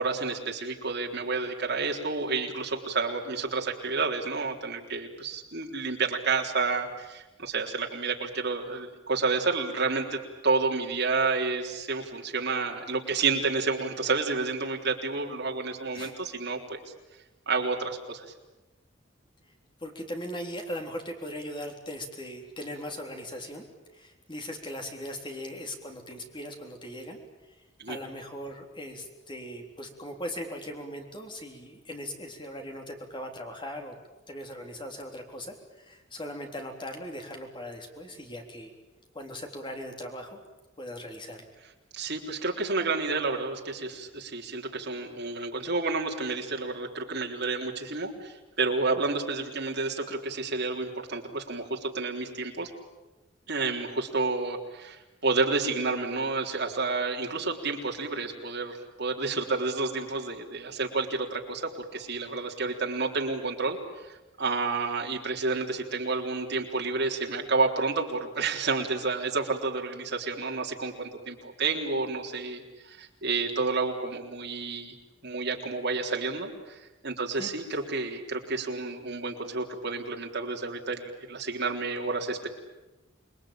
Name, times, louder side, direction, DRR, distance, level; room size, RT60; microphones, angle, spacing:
voice 1, 0.0-16.8 17.5-18.3 27.8-28.0 41.9-52.7 53.5-63.8 64.0-74.9 75.2-82.5, right 3 dB, 60° right, 1 dB, 3.7 m, -30 dB
voice 2, 19.8-23.7 23.9-27.2 27.9-33.9 34.3-38.7 39.1-40.4 40.8-41.5 77.4-77.5, equal, 25° left, 3 dB, 3.7 m, -39 dB
28.0 x 21.5 x 9.0 m, 1.1 s
head